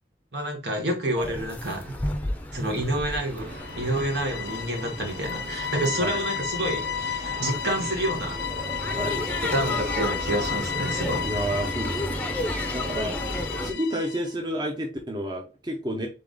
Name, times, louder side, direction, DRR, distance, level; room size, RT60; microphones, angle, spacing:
voice 1, 0.3-2.0 2.5-3.5 3.8-8.3 9.4-11.2, right 1 dB, 75° right, 1 dB, 1.7 m, -28 dB
sound 1, 1.2-13.7, left 1 dB, 10° left, 0.6 m, -33 dB
sound 2, 3.4-10.7, right 1 dB, 55° right, 1.7 m, -43 dB
sound 3, 3.5-14.3, left 8 dB, 65° left, 0.4 m, -33 dB
voice 2, 11.2-13.2 13.6-16.1, right 1 dB, 25° right, 2 dB, 0.7 m, -31 dB
3.9 x 3.6 x 3.7 m, 0.32 s
head